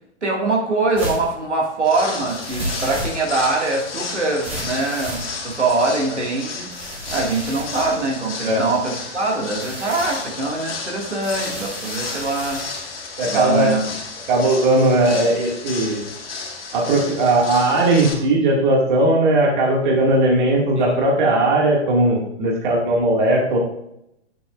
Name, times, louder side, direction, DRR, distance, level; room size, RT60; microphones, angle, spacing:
voice 1, 0.2-6.7 7.1-12.6 13.2-13.9 20.8-20.9, right 3 dB, 75° right, -2 dB, 2.1 m, -23 dB
sound 1, 1.0-1.3 2.3-3.5 4.4-5.7 6.7-8.8 9.5-10.3 11.2-12.8, right 1 dB, 15° right, 1.9 m, -32 dB
sound 2, 1.8-18.1, left 4 dB, 55° left, 2.0 m, -33 dB
voice 2, 13.2-13.7 14.3-16.0 16.7-23.6, right 2 dB, 45° right, -1 dB, 2.1 m, -18 dB
10.0 x 7.6 x 2.5 m, 0.80 s
figure-of-eight pair, 115°, 35 cm